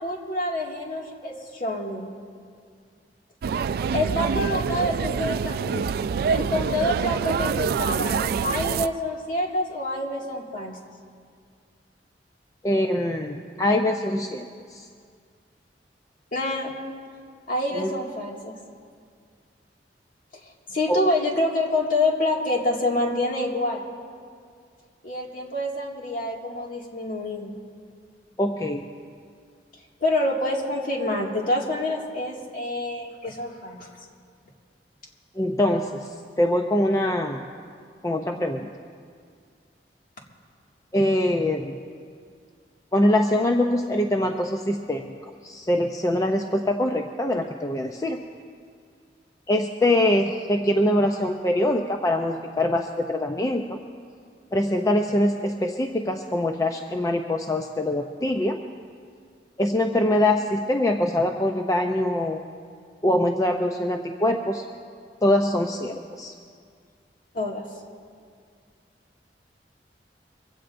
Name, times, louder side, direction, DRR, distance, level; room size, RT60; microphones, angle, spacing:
voice 1, 0.0-2.1 3.9-5.9 6.3-10.8 16.3-16.7 17.5-18.5 20.4-23.9 25.0-27.5 30.0-33.9 67.3-67.6, left 1 dB, 50° left, -1 dB, 2.2 m, -27 dB
sound 1, 3.4-8.9, right 6 dB, 60° right, 0.3 m, -26 dB
voice 2, 12.6-14.5 14.7-14.8 17.7-17.9 20.9-21.0 28.4-28.9 35.4-36.1 36.4-37.4 38.0-38.7 40.9-41.8 42.9-45.0 45.4-48.2 49.5-53.8 54.5-58.6 59.6-62.4 63.0-64.6 65.2-66.3, left 1 dB, 20° left, 3 dB, 0.5 m, -23 dB
23.5 x 16.5 x 2.6 m, 2.1 s
head